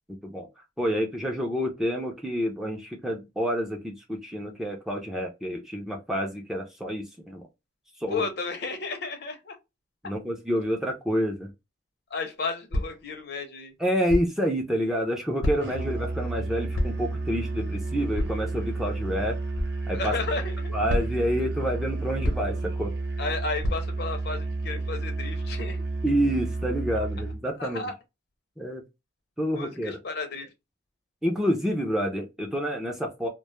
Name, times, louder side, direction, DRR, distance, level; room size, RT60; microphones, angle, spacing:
voice 1, 0.8-7.4 8.0-8.2 10.0-11.5 13.8-19.4 19.9-20.1 20.7-22.9 26.0-27.8 28.6-28.8 29.4-30.0 31.2-33.3, equal, ahead, 0.4 m, -28 dB
voice 2, 8.1-9.6 12.1-13.7 19.9-20.8 23.2-25.9 26.9-27.0 27.6-27.9 29.5-30.5, left 3 dB, 55° left, 0.6 m, -33 dB
sound 1, 12.7-13.1 14.1-14.4 15.4-15.8 16.7-17.1 18.1-18.5 19.6-19.8 20.9-21.3 22.2-22.7 23.6-24.0, left 1 dB, 90° left, 0.9 m, -29 dB
Musical instrument, 15.6-27.5, right 2 dB, 60° right, 0.6 m, -31 dB
2.1 x 2.0 x 3.0 m
head